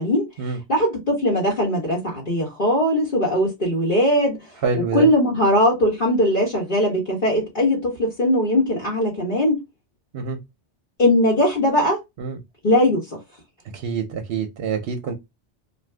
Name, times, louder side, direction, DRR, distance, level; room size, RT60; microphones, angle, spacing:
voice 1, 0.7-4.4 4.9-9.6 11.0-12.0 12.6-13.0, left 1 dB, 45° left, 1.2 m, -20 dB
voice 2, 4.6-5.1 10.1-10.4 12.2-12.4 13.7-15.1, right 5 dB, 60° right, 0.8 m, -26 dB
2.7 x 2.5 x 3.3 m
omnidirectional pair, 1.2 m